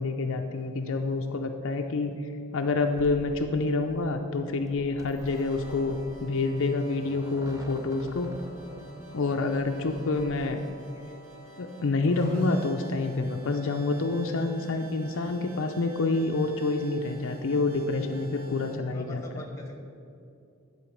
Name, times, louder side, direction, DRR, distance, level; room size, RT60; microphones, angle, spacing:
voice 1, 0.0-8.3 9.1-10.6 11.6-19.5, left 3 dB, 60° left, 4 dB, 0.5 m, -28 dB
sound 1, 2.9-10.4, right 1 dB, 15° right, 0.6 m, -47 dB
sound 2, 5.1-18.7, right 2 dB, 65° right, 2.3 m, -49 dB
voice 2, 18.9-19.8, left 1 dB, 15° left, 2 dB, 1.3 m, -43 dB
11.5 x 4.5 x 7.2 m, 2.5 s
head